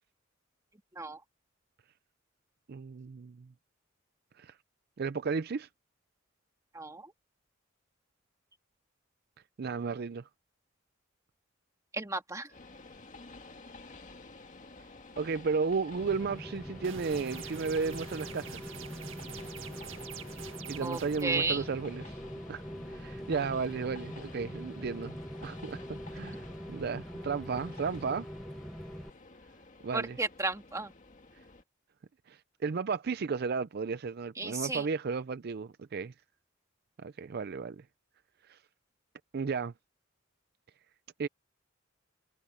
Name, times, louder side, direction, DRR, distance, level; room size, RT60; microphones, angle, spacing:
voice 1, 2.7-3.5 4.3-4.6 5.0-5.7 9.6-10.3 15.2-18.7 20.7-22.2 22.5-28.3 29.8-30.2 32.3-36.1 37.0-37.8 38.4-38.6 39.3-39.7 41.2-41.3, right 5 dB, 50° right, 0.4 m, -34 dB
voice 2, 6.7-7.1 11.9-12.5 20.8-21.6 29.9-30.9 34.4-34.9, right 3 dB, 15° right, 1.8 m, -33 dB
Train, 12.5-31.6, left 3 dB, 40° left, 1.9 m, -51 dB
Rain, 16.0-29.1, equal, ahead, 0.9 m, -43 dB
sound 1, 16.8-21.2, right 8 dB, 70° right, 2.0 m, -46 dB
head